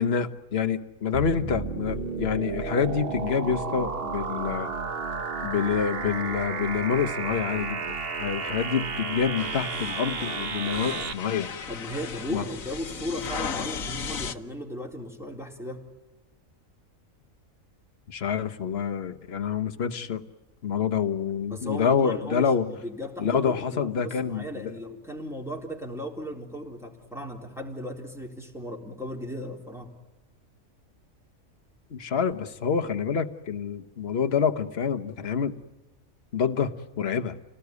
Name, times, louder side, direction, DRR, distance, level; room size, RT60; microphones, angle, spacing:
voice 1, 0.0-4.7 5.4-11.5 12.3-12.4 18.1-20.2 20.6-22.7 23.2-24.7 31.9-35.5 36.3-37.4, left 6 dB, 50° left, 8 dB, 1.4 m, -27 dB
sound 1, 1.1-11.1, right 4 dB, 45° right, 1.5 m, -32 dB
sound 2, 9.4-14.4, left 6 dB, 80° left, 1.6 m, -36 dB
voice 2, 11.7-15.8 21.5-29.9, equal, ahead, 0 dB, 3.9 m, -36 dB
29.0 x 18.5 x 9.6 m, 1.1 s
omnidirectional pair, 1.4 m